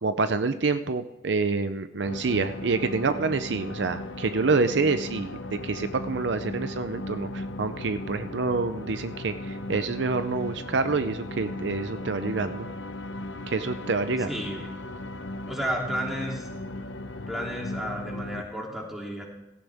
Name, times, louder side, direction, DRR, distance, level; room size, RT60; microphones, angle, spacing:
voice 1, 0.0-12.7 13.5-14.5, right 4 dB, 70° right, 10 dB, 0.6 m, -27 dB
sound 1, 2.1-18.4, left 1 dB, 85° left, 0.9 m, -37 dB
voice 2, 14.3-14.7 15.5-16.5 17.3-19.2, equal, ahead, -2 dB, 2.9 m, -32 dB
17.0 x 14.0 x 3.5 m, 0.94 s
head